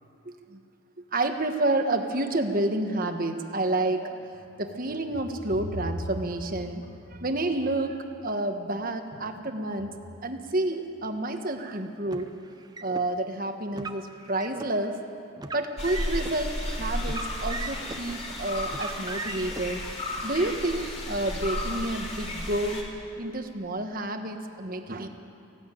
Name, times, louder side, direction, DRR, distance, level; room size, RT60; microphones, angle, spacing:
voice 1, 0.2-0.6 1.1-4.3 4.6-6.8 7.1-12.3 12.8-15.0 15.5-19.8 20.2-22.8 23.2-25.1, right 2 dB, 40° right, 6 dB, 1.3 m, -29 dB
sound 1, 4.2-7.8 9.1-9.5 9.8-10.2, equal, 45° left, 3.9 m, -39 dB
Car, 12.1-13.0 13.7-14.7 15.4-16.3 17.0-18.1 18.7-19.6, right 3 dB, 20° right, 0.7 m, -38 dB
sound 2, 15.8-22.8, left 1 dB, 30° left, 2.9 m, -33 dB
18.5 x 16.0 x 9.3 m, 2.6 s
head